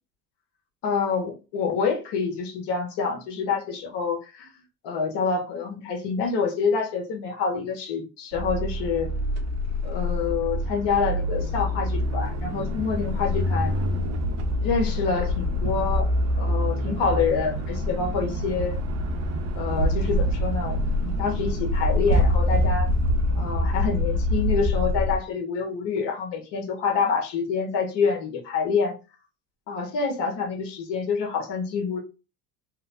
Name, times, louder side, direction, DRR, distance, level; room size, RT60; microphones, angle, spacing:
voice 1, 0.8-4.5 4.8-9.1 9.8-13.7 14.6-16.1 16.4-18.8 19.6-22.9 23.3-28.9 29.7-32.0, left 5 dB, 55° left, 1.1 m, -27 dB
sound 1, 8.3-25.2, left 1 dB, 35° right, 0.5 m, -25 dB
2.8 x 2.1 x 2.5 m
hypercardioid pair, 80°, 49 cm